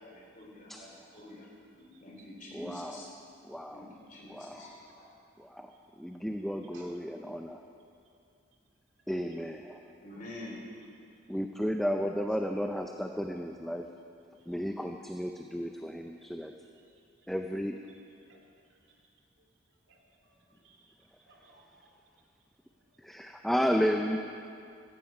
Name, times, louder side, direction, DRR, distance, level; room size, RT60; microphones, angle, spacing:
voice 1, 0.0-1.5 2.0-3.1 3.7-5.1 10.0-10.6, left 1 dB, 40° left, -2 dB, 3.6 m, -47 dB
voice 2, 1.8-2.3 2.7-2.8 6.7-6.9 18.3-18.4 18.7-18.8 19.4-19.5 19.9-21.9, right 2 dB, 70° right, -1 dB, 2.6 m, -61 dB
voice 3, 2.5-3.1 3.4-3.9 4.3-4.7 5.4-5.7 6.0-7.6 9.1-9.8 11.3-13.9 14.5-16.5 17.3-17.8 23.0-24.2, equal, ahead, 4 dB, 0.5 m, -33 dB
15.5 x 15.0 x 5.3 m, 2.5 s
head